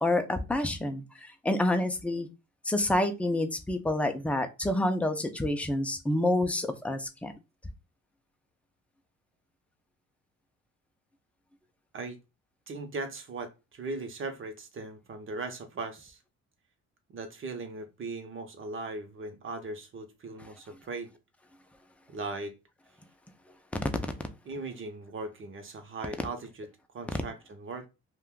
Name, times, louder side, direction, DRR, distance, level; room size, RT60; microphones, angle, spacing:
voice 1, 0.0-2.3 2.7-7.3 23.8-23.9, left 1 dB, 5° left, 6 dB, 0.5 m, -28 dB
voice 2, 12.7-16.2 17.1-21.1 22.1-22.6 24.5-26.7 26.9-27.9, right 3 dB, 40° right, 6 dB, 0.8 m, -38 dB
2.4 x 2.3 x 3.6 m, 0.27 s
cardioid pair, 90°, 30 cm